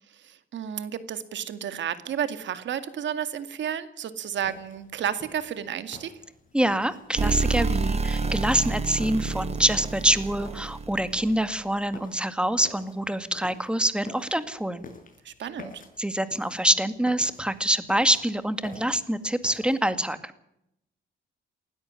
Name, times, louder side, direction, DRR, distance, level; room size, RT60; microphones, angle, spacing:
voice 1, 0.1-6.1 15.2-15.8, right 9 dB, 65° right, 11 dB, 2.2 m, -32 dB
sound 1, 4.4-20.0, left 3 dB, 45° left, 6.1 m, -49 dB
voice 2, 6.5-14.8 16.0-20.2, right 1 dB, 5° right, 11 dB, 2.0 m, -25 dB
sound 2, 7.1-11.4, right 3 dB, 30° right, 1.1 m, -28 dB
19.5 x 13.5 x 9.9 m, 0.79 s
cardioid pair, 90°, 20 cm